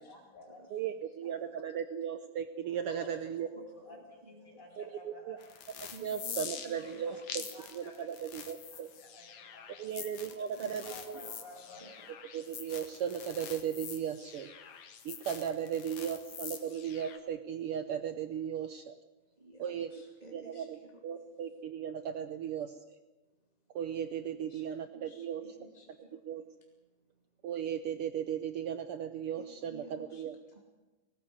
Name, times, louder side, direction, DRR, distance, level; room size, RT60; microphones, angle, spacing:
voice 1, 0.0-0.9 1.2-1.4 2.9-5.4 6.8-7.2 7.4-9.9 10.3-11.8, left 2 dB, 25° left, 0 dB, 8.2 m, -53 dB
voice 2, 0.7-3.5 4.8-5.4 6.0-7.1 7.7-8.9 9.8-11.2 12.3-14.5 15.0-19.0 19.6-19.9 20.3-23.0 23.7-25.4 26.3-26.4 27.4-30.4, right 8 dB, 80° right, 9 dB, 1.2 m, -36 dB
voice 3, 3.5-4.8 5.9-7.5 10.2-11.9 16.0-16.1 19.4-21.0 24.5-26.5 29.4-30.6, right 2 dB, 15° right, -1 dB, 2.5 m, -55 dB
sound 1, 5.4-17.2, left 8 dB, 60° left, 2.7 m, -45 dB
19.5 x 17.5 x 9.7 m, 1.1 s
omnidirectional pair, 3.7 m